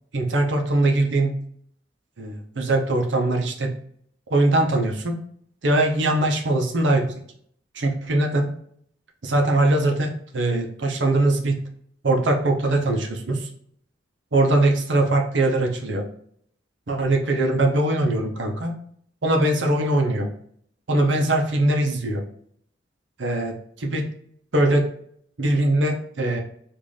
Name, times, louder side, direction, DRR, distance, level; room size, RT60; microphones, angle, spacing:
voice 1, 0.1-1.3 2.2-3.7 4.3-5.1 5.6-7.0 7.7-8.5 9.2-11.6 12.0-13.5 14.3-16.0 16.9-18.7 19.2-20.3 20.9-22.2 23.2-23.5 23.8-24.0 24.5-24.9 25.4-26.4, right 2 dB, 80° right, 3 dB, 0.7 m, -21 dB
3.9 x 2.5 x 3.2 m, 0.65 s
head